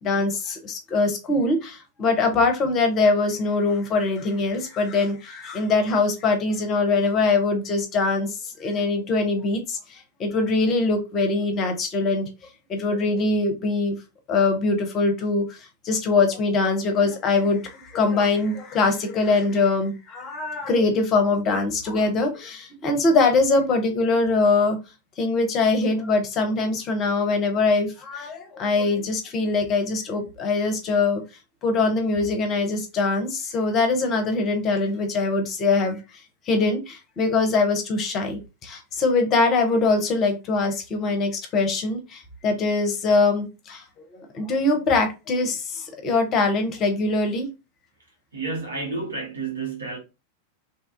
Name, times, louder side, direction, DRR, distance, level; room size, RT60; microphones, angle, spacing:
voice 1, 0.0-12.3 12.7-14.0 14.3-15.6 15.8-24.8 25.2-31.2 31.6-36.0 36.5-43.8 44.1-47.5, left 3 dB, 30° left, 0.7 m, -23 dB
voice 2, 48.3-50.0, right 3 dB, 75° right, 1.0 m, -30 dB
2.7 x 2.3 x 2.5 m
figure-of-eight pair, 90°, 0 cm